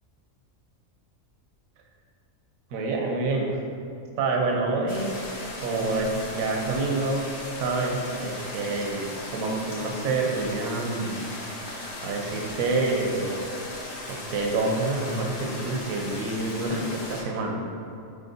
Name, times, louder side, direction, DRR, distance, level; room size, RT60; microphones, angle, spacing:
voice 1, 2.7-3.6 4.2-5.2 5.6-7.2 7.6-11.2 12.0-13.3 14.1-17.6, right 3 dB, 85° right, 0 dB, 1.2 m, -27 dB
sound 1, 4.9-17.2, left 1 dB, 75° left, 1.4 m, -38 dB
10.0 x 4.2 x 2.7 m, 2.7 s
omnidirectional pair, 1.4 m